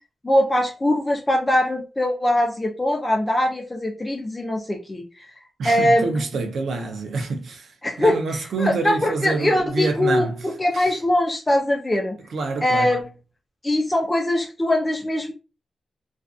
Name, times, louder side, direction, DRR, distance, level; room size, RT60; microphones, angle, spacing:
voice 1, 0.2-5.3 5.6-6.2 7.8-8.2 8.6-12.2 12.6-13.0 13.6-15.3, left 1 dB, 20° left, 0.5 m, -22 dB
voice 2, 5.6-10.3 10.7-11.0 12.3-13.0, right 3 dB, 80° right, 0.6 m, -27 dB
2.5 x 2.3 x 2.4 m
wide cardioid pair, 105°, 0 cm